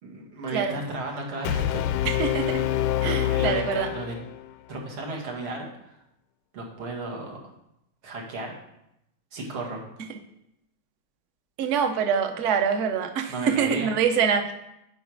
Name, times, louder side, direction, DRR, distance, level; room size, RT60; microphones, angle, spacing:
voice 1, 0.0-1.8 3.0-4.2 4.7-6.0 6.5-7.4 8.0-8.5 9.3-9.8 13.3-13.9, right 2 dB, 85° right, -1 dB, 2.7 m, -34 dB
Brass instrument, 1.4-4.5, left 12 dB, 90° left, 1.5 m, -26 dB
voice 2, 2.0-2.6 3.0-3.9 10.1-10.2 11.6-14.5, right 7 dB, 55° right, 7 dB, 0.9 m, -25 dB
9.2 x 5.2 x 6.2 m, 0.83 s
omnidirectional pair, 2.2 m